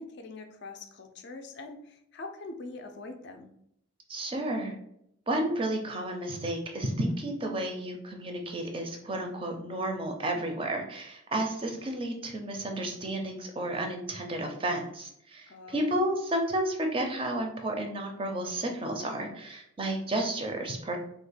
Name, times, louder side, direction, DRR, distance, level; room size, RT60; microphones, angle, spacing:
voice 1, 0.0-3.5 15.5-16.1, left 3 dB, 55° left, 6 dB, 0.4 m, -43 dB
voice 2, 4.1-4.8 5.3-21.0, right 1 dB, 25° right, 3 dB, 0.4 m, -32 dB
3.0 x 2.1 x 4.1 m, 0.75 s
head